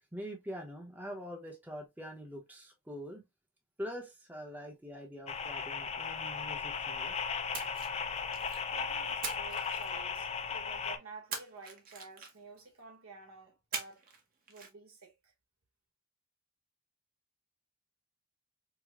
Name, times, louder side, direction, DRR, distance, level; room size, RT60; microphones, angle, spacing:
voice 1, 0.1-3.2 3.8-7.1, equal, 10° right, 0.7 m, -44 dB
sound 1, 5.3-11.0, left 6 dB, 30° left, 0.4 m, -36 dB
Splash splatter, 7.5-8.7 9.2-10.4 11.3-12.6 13.7-14.2 14.5-14.7, right 5 dB, 45° right, 0.8 m, -42 dB
voice 2, 8.7-14.0 14.5-15.3, right 4 dB, 90° right, 1.2 m, -51 dB
4.7 x 2.0 x 2.3 m
head